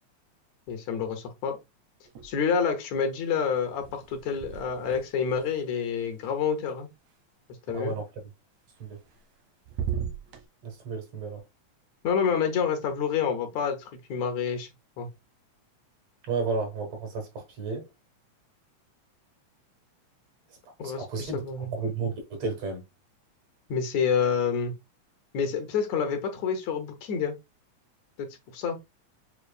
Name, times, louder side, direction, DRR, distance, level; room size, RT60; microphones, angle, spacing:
voice 1, 0.7-1.6 2.2-6.9 7.7-7.9 12.0-14.7 15.0-15.1 20.8-21.7 23.7-24.7 25.3-27.4 28.2-28.8, left 6 dB, 75° left, 2.2 m, -28 dB
sound 1, 2.1-2.8 3.0-7.1 8.8-9.4 9.7-10.5, right 8 dB, 75° right, 2.4 m, -38 dB
voice 2, 10.6-11.4 16.3-17.8 20.8-21.4 21.7-22.8, right 4 dB, 60° right, 2.5 m, -32 dB
7.1 x 3.0 x 2.3 m
omnidirectional pair, 3.3 m